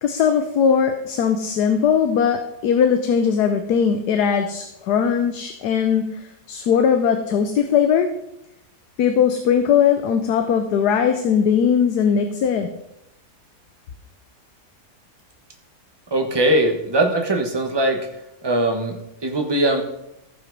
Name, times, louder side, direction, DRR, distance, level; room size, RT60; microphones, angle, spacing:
voice 1, 0.0-8.1 9.0-12.7, left 7 dB, 80° left, 7 dB, 1.3 m, -19 dB
voice 2, 16.1-18.1 18.4-19.8, right 1 dB, 15° right, 4 dB, 1.2 m, -21 dB
15.0 x 5.7 x 5.3 m, 0.85 s
omnidirectional pair, 1.7 m